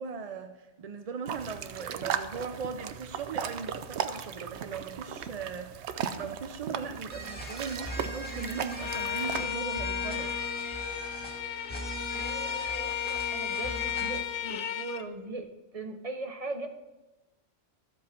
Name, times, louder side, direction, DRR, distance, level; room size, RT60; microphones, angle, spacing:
voice 1, 0.0-10.4, right 5 dB, 50° right, 7 dB, 0.4 m, -39 dB
sound 1, 1.3-9.5, right 8 dB, 75° right, 0.9 m, -37 dB
sound 2, 7.1-14.2, right 1 dB, 10° left, 2.0 m, -40 dB
Bowed string instrument, 8.8-15.1, left 10 dB, 90° left, 1.0 m, -34 dB
voice 2, 12.1-15.5 15.7-16.7, right 3 dB, 35° right, 6 dB, 0.9 m, -39 dB
13.0 x 7.6 x 4.2 m, 1.1 s
omnidirectional pair, 1.2 m